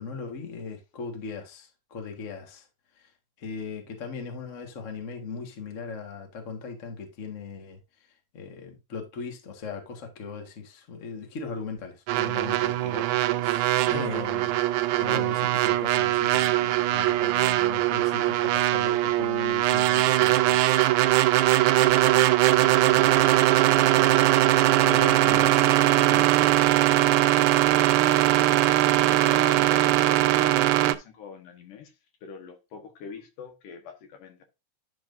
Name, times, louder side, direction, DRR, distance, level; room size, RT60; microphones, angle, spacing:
voice 1, 0.0-2.7 2.9-3.1 3.4-14.5 15.0-20.8 24.8-25.8 26.1-26.9, left 5 dB, 50° left, 0.8 m, -38 dB
sound 1, 12.1-31.0, right 15 dB, 80° right, 1.8 m, -21 dB
voice 2, 21.6-21.9 22.8-23.2 23.6-24.0 29.0-31.9 32.2-34.4, left 5 dB, 70° left, 2.9 m, -43 dB
10.5 x 6.1 x 2.6 m
omnidirectional pair, 4.0 m